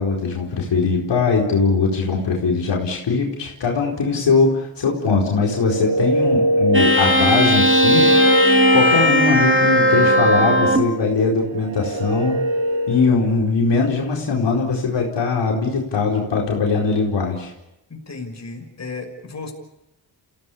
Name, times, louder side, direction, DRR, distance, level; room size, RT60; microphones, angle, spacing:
voice 1, 0.0-8.1 8.7-12.4 12.9-17.5, left 4 dB, 65° left, -1 dB, 4.5 m, -20 dB
sound 1, 5.4-13.3, equal, 85° right, 2.6 m, -22 dB
sound 2, 6.7-10.9, equal, 25° right, 2.8 m, -17 dB
voice 2, 17.9-19.5, left 3 dB, 35° left, 3 dB, 6.0 m, -34 dB
27.5 x 16.5 x 8.6 m, 0.90 s
cardioid pair, 65°, 45 cm